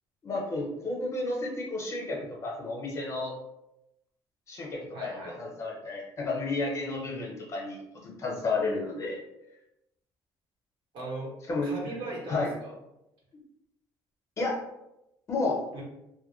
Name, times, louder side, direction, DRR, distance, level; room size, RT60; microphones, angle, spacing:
voice 1, 0.2-3.3 4.5-9.2 11.5-11.7 12.3-12.5 14.4-14.6 15.3-15.6, left 3 dB, 35° left, -2 dB, 0.7 m, -32 dB
voice 2, 4.9-5.4 10.9-11.3 11.6-12.7 15.7-15.8, right 2 dB, 70° right, -3 dB, 1.1 m, -38 dB
2.2 x 2.1 x 3.0 m, 0.88 s
cardioid pair, 120°, 9 cm